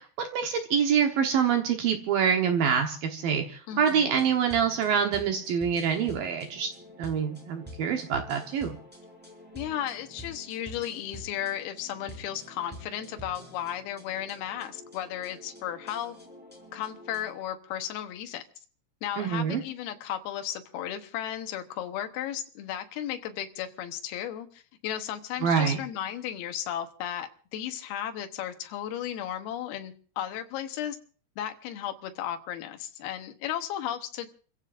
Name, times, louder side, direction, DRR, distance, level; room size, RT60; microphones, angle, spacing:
voice 1, 0.0-6.7 7.0-8.8 19.2-19.6 25.4-25.8, right 7 dB, 70° right, 4 dB, 2.4 m, -26 dB
voice 2, 3.7-4.1 9.5-16.2 16.7-18.4 19.0-31.0 31.4-34.3, left 11 dB, 70° left, 6 dB, 2.6 m, -35 dB
sound 1, 3.7-17.4, equal, ahead, 4.9 m, -48 dB
29.5 x 15.5 x 2.6 m, 0.43 s
omnidirectional pair, 5.4 m